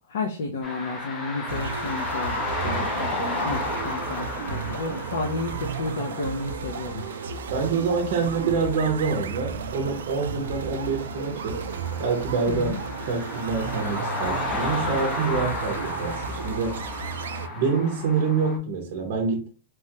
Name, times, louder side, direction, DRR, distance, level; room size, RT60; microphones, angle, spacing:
voice 1, 0.1-7.0 12.5-12.8, left 3 dB, 65° left, 0.5 m, -32 dB
sound 1, 0.6-18.6, left 2 dB, 15° left, 0.6 m, -34 dB
sound 2, 1.5-17.5, right 5 dB, 80° right, 0.3 m, -34 dB
voice 2, 7.5-11.6 12.0-12.8 13.1-16.8 17.5-19.5, right 5 dB, 40° right, 0.7 m, -26 dB
3.1 x 2.2 x 2.9 m
supercardioid pair, 165°, 0 cm